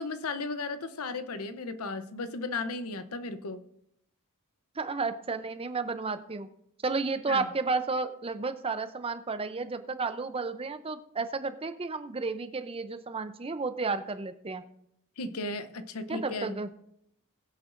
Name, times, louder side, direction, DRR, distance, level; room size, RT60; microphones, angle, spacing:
voice 1, 0.0-3.6 7.3-7.5 15.2-16.6, left 3 dB, 80° left, 11 dB, 0.8 m, -35 dB
voice 2, 4.8-6.5 6.8-14.6 16.1-16.7, right 4 dB, 25° right, 10 dB, 0.5 m, -32 dB
20.5 x 7.9 x 2.5 m, 0.76 s
head